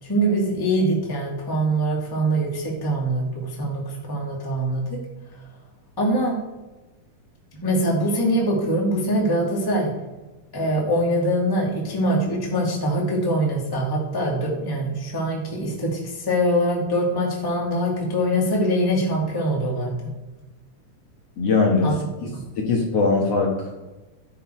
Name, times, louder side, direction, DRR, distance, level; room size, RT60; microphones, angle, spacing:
voice 1, 0.0-4.8 6.0-6.4 7.6-9.9 10.5-19.9 21.8-21.9 22.3-22.4, right 1 dB, 10° left, -2 dB, 1.6 m, -23 dB
voice 2, 21.4-21.9 22.2-23.7, left 4 dB, 55° left, -1 dB, 2.1 m, -21 dB
15.0 x 6.0 x 4.5 m, 1.1 s
omnidirectional pair, 3.9 m